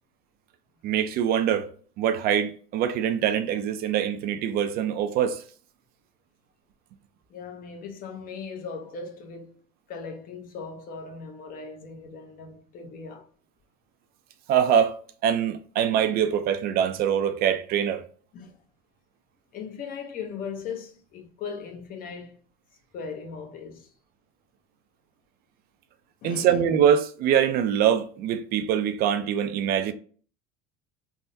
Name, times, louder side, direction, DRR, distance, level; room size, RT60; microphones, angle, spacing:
voice 1, 0.8-1.7 2.0-5.4 14.5-15.0 15.2-18.0 26.2-29.9, right 9 dB, 50° right, 0.4 m, -23 dB
voice 2, 7.3-9.5 9.9-13.3 18.3-18.6 19.5-22.4 22.9-23.9 26.2-26.6, left 5 dB, 45° left, 0.8 m, -38 dB
3.5 x 2.1 x 2.6 m
supercardioid pair, 110°, 20 cm